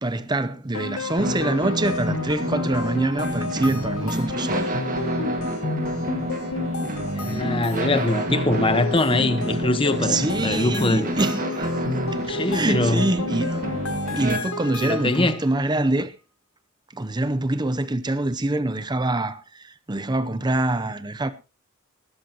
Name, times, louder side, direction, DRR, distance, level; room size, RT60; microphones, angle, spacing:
voice 1, 0.0-4.8 10.0-11.8 12.1-13.6 14.2-16.1 16.9-21.3, right 2 dB, 20° right, 0.7 m, -25 dB
sound 1, 0.7-15.4, left 3 dB, 75° left, 1.4 m, -32 dB
sound 2, 1.2-14.4, right 1 dB, 40° right, 1.9 m, -29 dB
voice 2, 7.1-11.1 12.2-13.0 14.8-15.4, left 2 dB, 25° left, 1.2 m, -23 dB
19.5 x 13.0 x 3.0 m
head